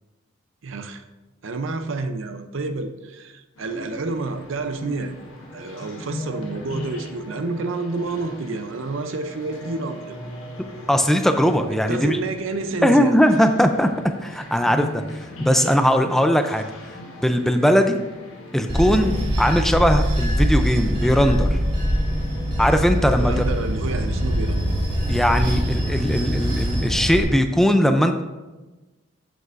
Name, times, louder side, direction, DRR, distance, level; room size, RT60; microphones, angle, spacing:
voice 1, 0.6-1.1 1.4-5.1 5.5-10.2 11.7-13.2 23.2-24.7, right 3 dB, 70° right, 8 dB, 0.6 m, -29 dB
sound 1, 3.6-19.2, left 1 dB, 85° left, 1.3 m, -38 dB
voice 2, 10.9-12.2 12.8-13.9 14.2-15.0 15.4-16.6 17.2-18.0 18.5-21.6 22.6-23.4 25.1-28.2, equal, ahead, 7 dB, 0.4 m, -19 dB
Bell / Train, 18.7-27.2, equal, 25° right, 1.7 m, -23 dB
8.0 x 7.7 x 2.5 m, 1.2 s
head